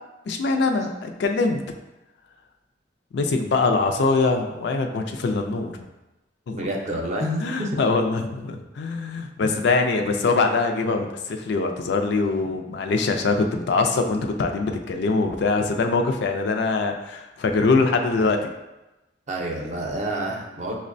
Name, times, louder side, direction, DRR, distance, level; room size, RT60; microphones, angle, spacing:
voice 1, 0.3-1.6 3.1-5.7 6.5-6.7 7.2-18.5, left 3 dB, 65° left, 4 dB, 0.4 m, -23 dB
voice 2, 6.6-7.8 9.4-9.6 19.3-20.8, right 1 dB, 40° right, 0 dB, 0.6 m, -28 dB
5.8 x 2.1 x 2.5 m, 1.0 s
head